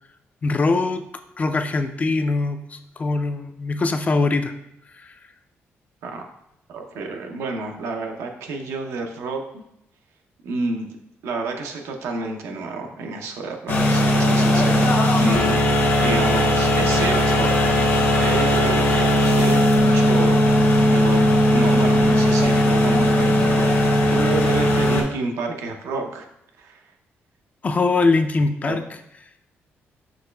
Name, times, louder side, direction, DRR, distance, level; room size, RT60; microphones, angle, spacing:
voice 1, 0.4-1.0 1.4-4.5 5.0-5.1 27.6-28.8, left 3 dB, 30° left, 8 dB, 0.3 m, -22 dB
voice 2, 6.7-9.6 10.4-10.9 11.2-14.9 15.2-17.6 18.2-26.3 26.6-26.9 28.7-28.8, right 3 dB, 90° right, 3 dB, 0.6 m, -30 dB
sound 1, 13.7-25.0, left 1 dB, 55° left, 0.8 m, -18 dB
6.3 x 3.1 x 2.2 m, 0.81 s
cardioid pair, 105°, 5 cm